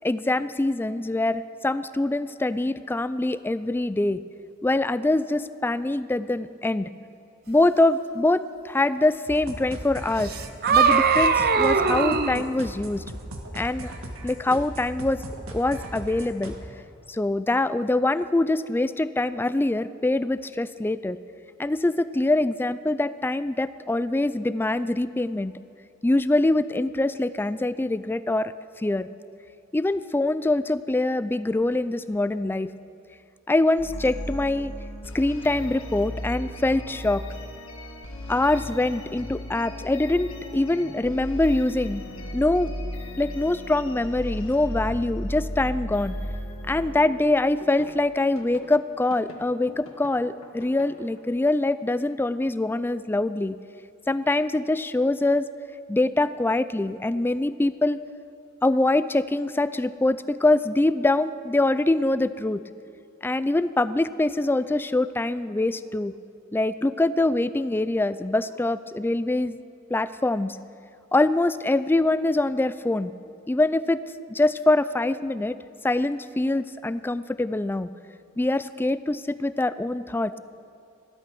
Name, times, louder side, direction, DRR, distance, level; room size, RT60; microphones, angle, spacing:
voice 1, 0.0-4.2 4.6-6.9 7.5-10.3 10.7-13.0 13.5-13.9 14.2-15.2 15.5-16.6 17.1-21.2 21.6-25.5 26.0-29.1 29.7-32.7 33.5-34.7 35.1-37.2 38.3-42.0 42.3-42.8 43.2-46.2 46.7-53.6 54.1-55.5 55.9-58.0 58.6-62.6 63.2-66.1 66.5-69.6 69.9-70.6 71.1-73.1 73.5-74.0 74.3-75.6 75.8-77.9 78.4-80.4, left 2 dB, 10° left, 14 dB, 0.3 m, -24 dB
sound 1, 9.3-16.6, right 1 dB, 75° right, 1.7 m, -38 dB
sound 2, 10.2-12.4, right 5 dB, 50° right, 0.7 m, -20 dB
sound 3, 33.8-48.0 48.3-48.7 49.1-51.2, equal, 75° left, 1.7 m, -36 dB
15.5 x 12.5 x 6.0 m, 2.6 s
head